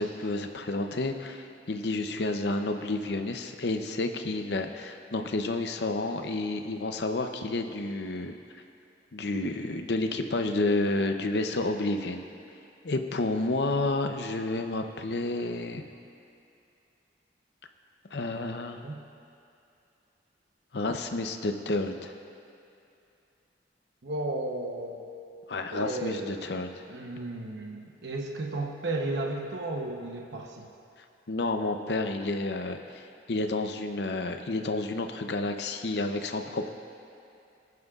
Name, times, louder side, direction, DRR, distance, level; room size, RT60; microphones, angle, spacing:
voice 1, 0.0-8.4 9.1-12.2 12.8-15.8 18.1-18.8 20.7-22.1 25.5-26.8 31.3-36.7, left 2 dB, 65° left, 6 dB, 0.7 m, -30 dB
voice 2, 24.0-25.1 25.7-26.3 26.9-30.7, right 2 dB, 80° right, 0 dB, 0.9 m, -34 dB
22.0 x 9.4 x 2.4 m, 2.7 s
head